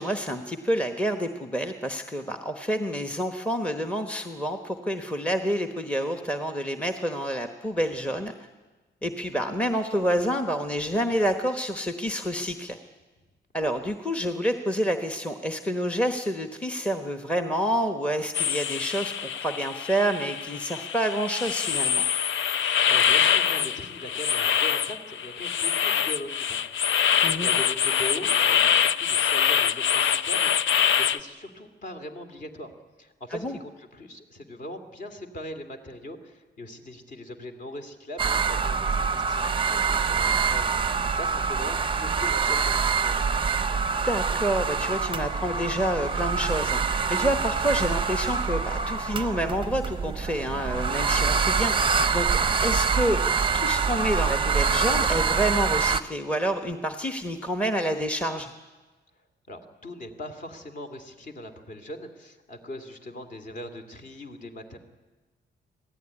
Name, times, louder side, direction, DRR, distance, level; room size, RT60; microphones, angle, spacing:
voice 1, 0.0-8.5 9.0-12.8 13.5-22.1 27.2-27.5 33.3-33.6 44.0-46.8 47.1-53.2 53.5-58.5, equal, 5° left, 7 dB, 1.0 m, -28 dB
sound 1, 18.3-31.2, left 8 dB, 80° left, 0.7 m, -24 dB
voice 2, 22.6-26.6 26.9-32.7 33.0-43.2 59.5-64.8, left 1 dB, 45° left, 6 dB, 2.5 m, -40 dB
sound 2, 38.2-56.0, right 5 dB, 25° right, 0.7 m, -25 dB
26.0 x 17.0 x 9.8 m, 1.3 s
wide cardioid pair, 170°, 19 cm